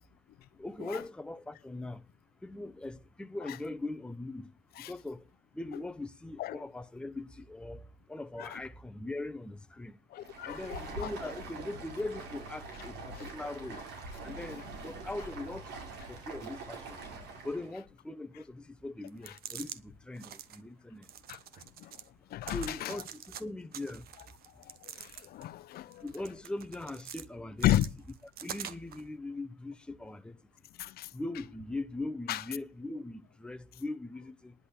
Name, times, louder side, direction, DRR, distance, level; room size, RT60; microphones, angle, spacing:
voice 1, 0.6-2.0 2.4-4.5 4.8-5.2 5.5-10.0 10.4-13.8 14.2-15.7 16.1-17.0 17.4-21.1 22.5-24.0 26.0-27.7 28.4-30.4 31.1-34.5, left 2 dB, 5° left, 0.8 m, -40 dB
voice 2, 10.1-11.1 21.3-21.4 21.8-21.9 22.3-22.9 24.7-26.0 27.6-27.9 30.8-31.1 32.3-32.4, left 14 dB, 65° left, 0.7 m, -32 dB
Stream, 10.1-17.7, right 3 dB, 85° right, 4.8 m, -44 dB
Pill packet handling, 19.1-19.8 20.1-20.6 21.0-22.1 22.4-23.4 23.7-25.5 25.9-27.2 27.6-29.0, right 9 dB, 65° right, 1.2 m, -45 dB
10.5 x 8.3 x 7.3 m
cardioid pair, 110°, 17 cm